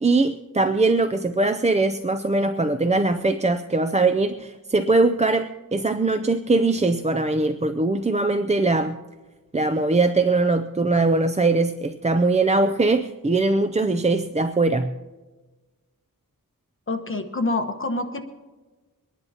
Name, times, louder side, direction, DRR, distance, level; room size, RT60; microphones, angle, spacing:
voice 1, 0.0-9.0 9.5-14.9, right 3 dB, 20° right, 9 dB, 0.5 m, -21 dB
voice 2, 16.9-18.3, left 2 dB, 35° left, 6 dB, 1.2 m, -26 dB
24.0 x 10.5 x 2.9 m, 1.2 s
wide cardioid pair, 80°, 35 cm